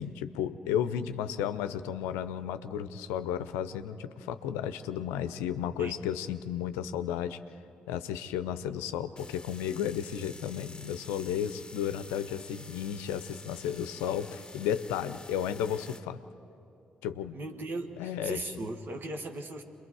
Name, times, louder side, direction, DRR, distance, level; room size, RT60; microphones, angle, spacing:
voice 1, 0.0-7.4 7.9-16.2 17.0-17.4 18.0-18.4, left 9 dB, 85° left, 11 dB, 0.6 m, -33 dB
sound 1, 9.2-16.0, left 3 dB, 20° left, 1.2 m, -49 dB
voice 2, 17.3-19.6, right 2 dB, 55° right, 5 dB, 1.8 m, -38 dB
28.5 x 22.0 x 4.8 m, 2.7 s
hypercardioid pair, 45°, 4 cm